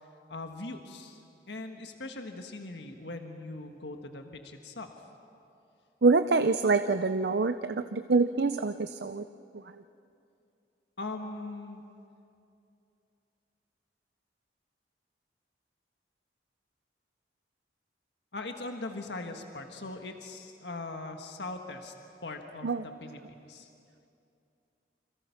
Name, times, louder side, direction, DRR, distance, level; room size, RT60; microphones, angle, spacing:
voice 1, 0.3-1.2 1.5-4.9 11.0-11.8 18.3-21.9 22.2-23.2 23.5-23.7, left 2 dB, 75° left, 4 dB, 1.5 m, -40 dB
voice 2, 6.0-9.2 22.6-22.8, right 4 dB, 65° right, 10 dB, 0.6 m, -25 dB
28.5 x 26.0 x 5.9 m, 2.6 s
head